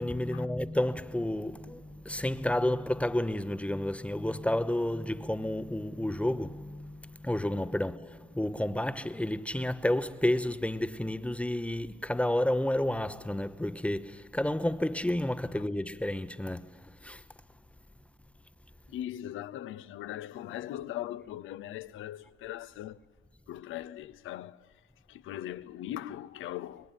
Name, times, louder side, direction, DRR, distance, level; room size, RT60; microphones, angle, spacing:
voice 1, 0.0-16.7 17.0-17.2, left 1 dB, 5° left, 0.9 m, -31 dB
voice 2, 18.9-23.0 23.5-24.7 25.1-26.9, left 12 dB, 85° left, 0.7 m, -40 dB
24.0 x 21.0 x 9.3 m
cardioid pair, 90°, 20 cm